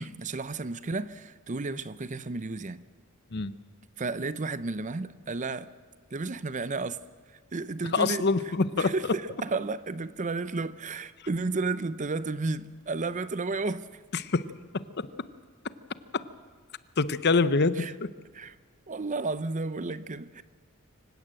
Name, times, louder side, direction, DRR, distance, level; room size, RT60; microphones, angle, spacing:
voice 1, 0.0-2.9 4.0-5.7 6.1-7.0 7.3-8.3 8.8-14.0 17.8-17.9 18.3-18.5 18.9-20.4, right 3 dB, 35° right, 0.6 m, -32 dB
voice 2, 7.9-8.9 14.1-14.5 14.7-14.8 16.1-16.2 17.0-18.1, left 4 dB, 50° left, 0.8 m, -25 dB
25.5 x 16.5 x 7.8 m
head